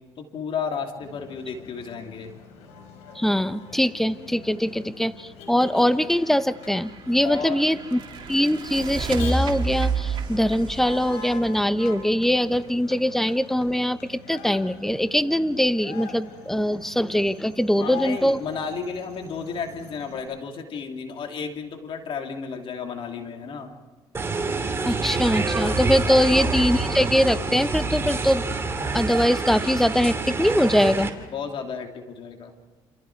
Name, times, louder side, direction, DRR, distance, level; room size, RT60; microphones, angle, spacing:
voice 1, 0.2-2.3 7.2-7.6 17.8-23.7 26.0-26.3 31.3-32.5, left 6 dB, 55° left, 3 dB, 2.8 m, -33 dB
Motor vehicle (road), 1.0-20.2, left 5 dB, 80° left, 5.5 m, -43 dB
voice 2, 3.1-8.0 8.3-18.4 24.8-28.5 28.9-31.1, equal, 5° left, 12 dB, 1.0 m, -22 dB
sound 1, 6.6-12.3, right 4 dB, 50° right, 3.1 m, -30 dB
sound 2, 24.1-31.1, right 3 dB, 25° right, 2.9 m, -27 dB
28.5 x 28.0 x 4.6 m, 1.3 s
cardioid pair, 95°, 11 cm